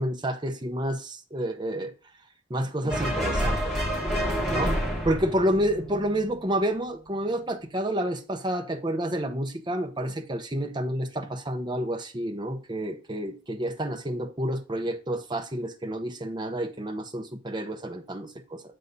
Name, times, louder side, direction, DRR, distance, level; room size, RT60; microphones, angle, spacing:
voice 1, 0.0-1.9 2.5-3.7 4.5-4.7 5.0-18.6, right 1 dB, 20° right, 0.8 m, -29 dB
sound 1, 2.9-6.4, equal, ahead, 2.4 m, -28 dB
8.1 x 3.6 x 5.4 m
head